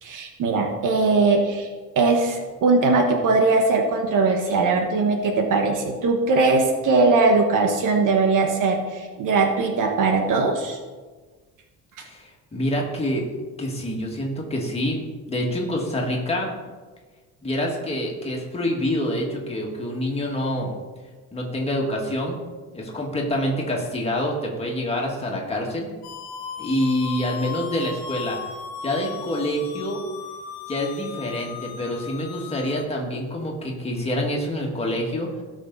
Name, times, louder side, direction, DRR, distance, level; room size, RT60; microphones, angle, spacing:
voice 1, 0.0-1.7 1.9-10.8, right 3 dB, 55° right, 3 dB, 1.4 m, -20 dB
voice 2, 12.0-13.3 13.6-15.0 15.3-16.5 17.4-20.7 21.3-22.4 22.7-25.9 26.6-28.4 28.8-30.0 30.7-35.4, left 1 dB, 15° left, -1 dB, 2.2 m, -26 dB
sound 1, 26.0-32.8, left 6 dB, 75° left, 1.3 m, -37 dB
17.0 x 6.4 x 4.1 m, 1.4 s
cardioid pair, 145°, 36 cm